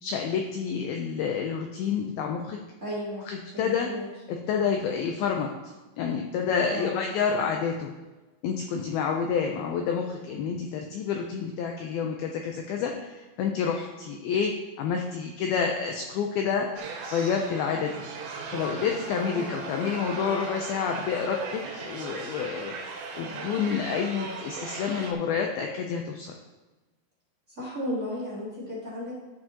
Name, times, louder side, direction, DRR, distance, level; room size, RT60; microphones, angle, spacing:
voice 1, 0.0-2.6 3.3-3.9 4.3-7.9 8.4-14.5 14.8-16.9 17.1-18.0 18.5-22.7 23.1-26.3, left 6 dB, 80° left, 2 dB, 2.2 m, -29 dB
voice 2, 2.8-3.2 3.5-4.1 6.7-7.0 19.3-19.5 27.6-29.1, left 1 dB, 20° right, -9 dB, 2.9 m, -34 dB
sound 1, 16.8-25.1, right 4 dB, 90° right, 3.5 m, -38 dB
14.0 x 6.7 x 2.9 m, 1.2 s
omnidirectional pair, 4.9 m